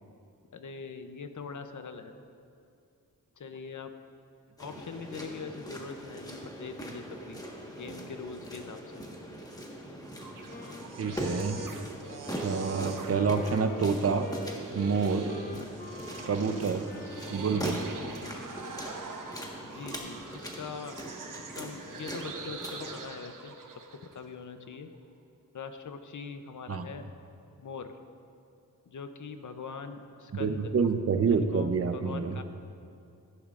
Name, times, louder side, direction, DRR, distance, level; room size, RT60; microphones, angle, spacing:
voice 1, 0.5-2.1 3.4-3.9 4.6-7.4 7.7-9.0 19.6-21.0 21.3-23.5 23.9-24.9 25.5-27.1 27.6-28.0 28.9-30.7 31.3-32.4, left 5 dB, 60° left, 8 dB, 0.8 m, -42 dB
sound 1, 4.6-23.0, equal, 10° left, 1.5 m, -41 dB
sound 2, 10.1-24.2, right 4 dB, 70° right, 0.9 m, -43 dB
Wind instrument woodwind instrument, 10.5-19.1, left 3 dB, 25° left, 0.6 m, -47 dB
voice 2, 11.0-11.6 12.4-14.3 14.7-15.3 16.2-16.8 17.3-17.9 26.7-26.9 30.3-32.3, right 5 dB, 45° right, 8 dB, 0.7 m, -28 dB
15.5 x 10.5 x 2.5 m, 2.5 s
wide cardioid pair, 85°, 33 cm